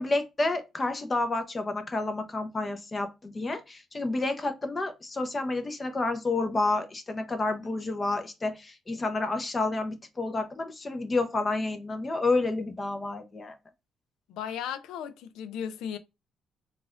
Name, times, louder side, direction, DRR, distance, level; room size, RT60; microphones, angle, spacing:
voice 1, 0.0-13.6, left 2 dB, 30° left, 0.7 m, -30 dB
voice 2, 14.3-16.0, left 8 dB, 90° left, 0.4 m, -36 dB
4.0 x 2.4 x 2.4 m
cardioid pair, 90°, 0 cm